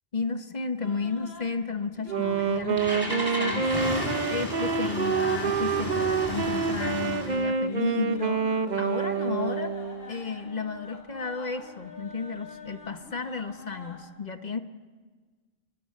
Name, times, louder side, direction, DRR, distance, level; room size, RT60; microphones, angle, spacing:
voice 1, 0.1-9.7 10.1-14.6, left 4 dB, 35° left, 8 dB, 1.2 m, -33 dB
sound 1, 0.8-14.0, left 4 dB, 90° left, 4.0 m, -47 dB
Wind instrument woodwind instrument, 2.1-10.1, right 5 dB, 40° right, 0.9 m, -27 dB
Engine starting, 2.2-7.4, right 1 dB, 20° right, 5.1 m, -33 dB
27.0 x 23.5 x 6.7 m, 1.5 s
omnidirectional pair, 1.3 m